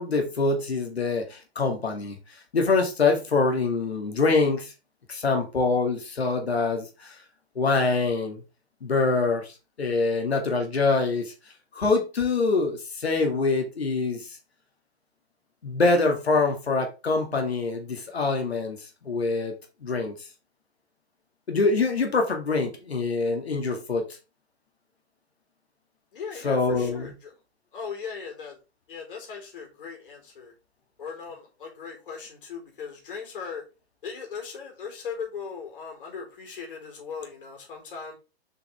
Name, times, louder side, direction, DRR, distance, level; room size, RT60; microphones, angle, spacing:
voice 1, 0.0-2.2 2.5-4.7 5.1-7.2 7.6-8.4 8.8-11.3 11.7-14.4 15.6-18.8 19.0-20.1 21.5-24.1 26.4-27.1, left 3 dB, 70° left, 2.2 m, -25 dB
voice 2, 26.1-27.3 27.7-28.6 28.9-30.5 31.0-33.6 34.0-38.1, left 6 dB, 55° left, 4.0 m, -38 dB
6.9 x 6.0 x 3.5 m
figure-of-eight pair, 120°, 33 cm